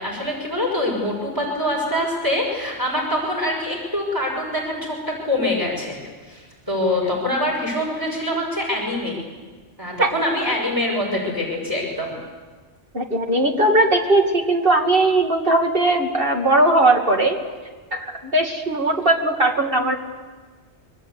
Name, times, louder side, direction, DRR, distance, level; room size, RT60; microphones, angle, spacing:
voice 1, 0.0-6.0 6.3-9.2 9.8-12.2, left 1 dB, 15° right, -2 dB, 6.0 m, -24 dB
voice 2, 12.9-17.4 17.9-19.9, right 2 dB, 50° right, 2 dB, 2.6 m, -19 dB
27.0 x 23.0 x 8.4 m, 1.4 s
omnidirectional pair, 1.2 m